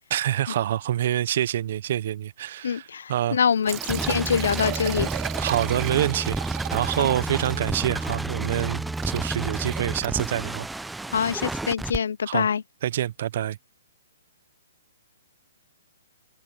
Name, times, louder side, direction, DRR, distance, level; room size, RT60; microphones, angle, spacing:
voice 1, 0.1-3.4 5.4-6.4 6.7-10.7 12.3-12.5 12.8-13.6, right 11 dB, 55° right, 0.8 m, -26 dB
voice 2, 2.6-5.1 7.0-7.1 11.1-12.6, left 7 dB, 75° left, 0.5 m, -25 dB
Liquid, 3.5-10.4, right 29 dB, 35° right, 3.3 m, -36 dB
sound 1, 3.7-12.0, right 2 dB, 5° right, 0.6 m, -31 dB
hypercardioid pair, 145°, 0 cm